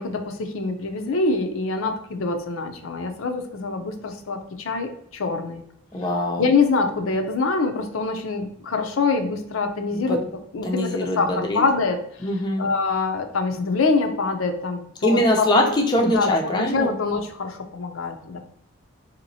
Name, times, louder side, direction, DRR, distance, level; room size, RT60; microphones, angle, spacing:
voice 1, 0.0-5.6 6.4-10.2 10.5-12.0 12.6-15.7 16.0-18.4, left 4 dB, 75° left, 5 dB, 0.5 m, -25 dB
voice 2, 5.9-6.4 9.9-10.2 10.6-11.6 12.2-12.6 15.0-16.9, left 1 dB, 20° left, 1 dB, 0.4 m, -22 dB
3.9 x 2.9 x 2.6 m, 0.71 s
head